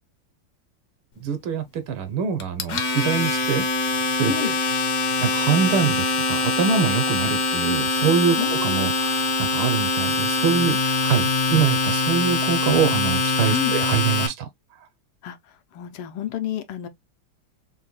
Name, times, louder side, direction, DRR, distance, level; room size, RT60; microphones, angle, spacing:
voice 1, 1.2-3.7 4.2-4.5 5.2-14.5, right 7 dB, 75° right, 1.5 m, -24 dB
Domestic sounds home sounds, 2.4-14.3, left 3 dB, 65° left, 0.8 m, -23 dB
voice 2, 8.4-8.9 13.5-13.8 15.2-15.4 15.7-16.9, left 10 dB, 85° left, 1.6 m, -30 dB
5.6 x 2.2 x 3.0 m
omnidirectional pair, 2.4 m